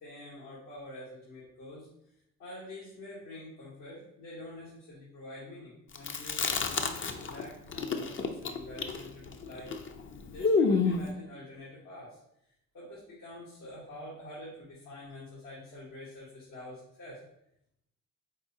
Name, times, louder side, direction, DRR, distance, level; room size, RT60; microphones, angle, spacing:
voice 1, 0.0-1.9 2.4-9.7 10.2-12.2 12.7-17.2, left 1 dB, 75° left, -7 dB, 1.3 m, -46 dB
Chewing mastication, 5.9-7.4 7.7-11.1, left 4 dB, 35° left, 0.5 m, -29 dB
4.0 x 3.6 x 2.7 m, 0.78 s
supercardioid pair, 45°, 33 cm